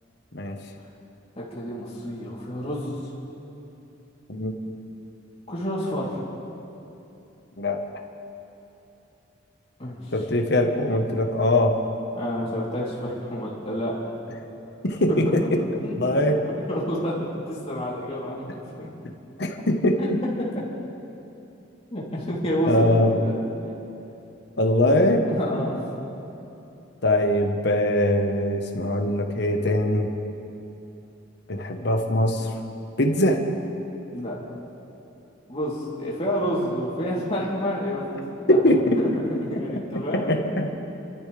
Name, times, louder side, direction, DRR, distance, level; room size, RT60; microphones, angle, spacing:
voice 1, 1.4-3.0 5.5-6.2 9.8-10.2 12.1-14.0 15.1-15.4 15.8-16.2 16.7-18.9 20.0-20.1 20.4-20.5 21.9-23.8 25.3-25.8 34.1-34.6 35.5-38.1 38.4-38.6 39.0-40.4, equal, 30° left, -7 dB, 3.3 m, -29 dB
voice 2, 10.1-11.8 14.8-15.3 15.5-15.6 16.0-16.4 19.4-20.2 22.7-23.2 24.6-25.3 27.0-30.1 31.5-32.5 33.0-33.4 38.5-39.2 40.1-40.7, left 1 dB, 55° left, 4 dB, 1.3 m, -22 dB
29.0 x 13.5 x 3.4 m, 2.9 s
head